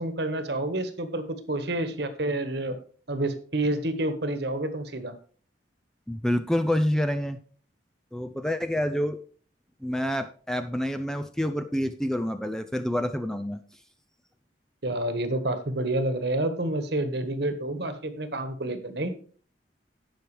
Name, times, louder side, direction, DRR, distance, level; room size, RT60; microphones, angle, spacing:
voice 1, 0.0-2.8 3.1-5.1 14.8-19.1, right 1 dB, 60° right, 9 dB, 1.5 m, -29 dB
voice 2, 6.1-7.4 8.1-9.2 9.8-13.6, equal, 5° left, 8 dB, 0.5 m, -27 dB
17.0 x 6.3 x 3.3 m, 0.42 s
head